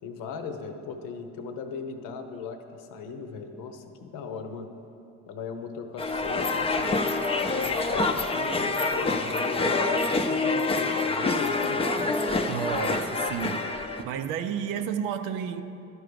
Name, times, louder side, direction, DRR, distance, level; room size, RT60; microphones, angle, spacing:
voice 1, 0.0-4.7 5.3-7.2 7.5-12.2, left 5 dB, 85° left, 0.8 m, -38 dB
sound 1, 6.0-14.0, left 3 dB, 20° left, 0.5 m, -26 dB
voice 2, 12.5-13.6 14.0-15.6, right 8 dB, 90° right, 0.6 m, -31 dB
12.0 x 4.7 x 5.1 m
cardioid pair, 90°, 31 cm